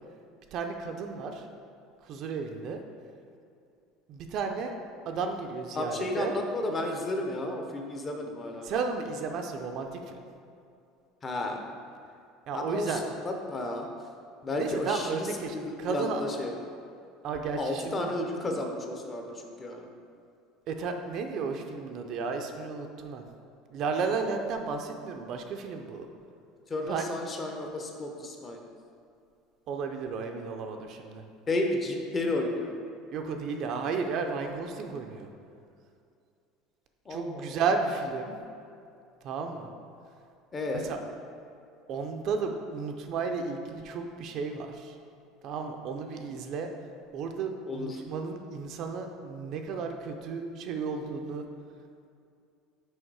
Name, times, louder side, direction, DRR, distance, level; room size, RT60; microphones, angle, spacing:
voice 1, 0.5-1.4 2.0-2.8 4.1-4.8 5.1-6.4 8.6-10.2 12.5-13.0 14.6-16.2 17.2-18.1 20.7-23.2 23.7-26.1 26.8-27.1 29.7-31.2 33.1-35.3 37.1-38.4 39.2-39.7 40.8-41.0 41.9-44.9 45.4-46.7 47.1-51.4, right 5 dB, 40° right, 4 dB, 0.5 m, -33 dB
voice 2, 5.7-8.7 11.2-11.7 12.5-13.9 14.4-16.5 17.6-19.9 26.7-28.6 31.5-32.7 37.1-37.6 40.5-40.9 47.7-48.0, left 2 dB, 20° left, 2 dB, 0.6 m, -32 dB
6.3 x 4.9 x 4.7 m, 2.5 s
cardioid pair, 170°, 0 cm